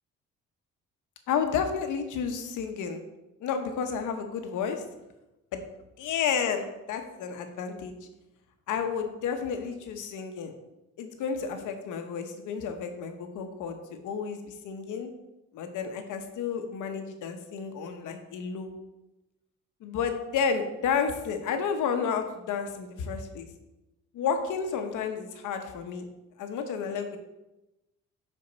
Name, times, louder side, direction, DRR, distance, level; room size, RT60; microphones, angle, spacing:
voice 1, 1.3-3.0 3.4-4.8 5.5-5.6 6.0-7.9 8.7-10.5 11.0-13.8 14.0-15.1 15.5-18.7 19.8-23.5 24.1-26.0 26.4-27.2, left 6 dB, 80° left, 6 dB, 0.9 m, -31 dB
5.4 x 5.4 x 4.0 m, 0.97 s
cardioid pair, 90°, 30 cm